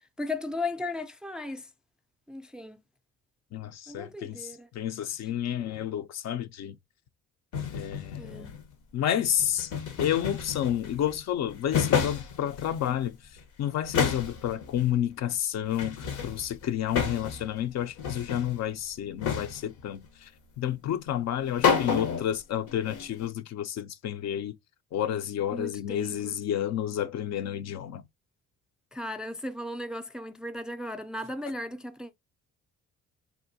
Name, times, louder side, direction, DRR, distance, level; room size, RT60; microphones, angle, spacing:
voice 1, 0.2-1.7 2.3-2.8 3.9-4.7 8.2-8.6 25.5-26.4 28.9-32.2, left 2 dB, 5° right, 0.3 m, -36 dB
voice 2, 3.5-6.8 7.7-8.5 8.9-9.7 10.0-13.2 13.6-20.3 20.6-24.5 24.9-28.0, left 10 dB, 60° left, 0.5 m, -30 dB
sound 1, 7.5-8.7 9.4-11.2 11.5-13.1 13.4-13.5 13.8-14.9 15.8-17.6 17.8-18.6 19.2-19.8 21.3-21.4 21.6-22.4 22.7-23.3, left 7 dB, 85° left, 0.9 m, -30 dB
3.6 x 2.5 x 2.5 m
cardioid pair, 90°, 30 cm